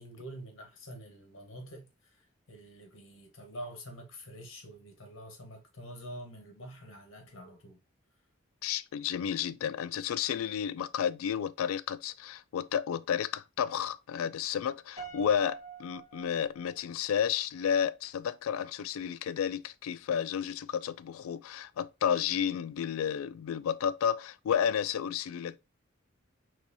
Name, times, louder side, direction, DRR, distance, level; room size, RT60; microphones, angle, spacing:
voice 1, 0.0-2.2 2.5-7.8, equal, 70° left, 1.2 m, -46 dB
voice 2, 8.6-25.6, left 8 dB, 90° left, 0.3 m, -32 dB
Piano, 15.0-17.2, right 6 dB, 25° right, 1.7 m, -46 dB
4.0 x 3.1 x 2.6 m
head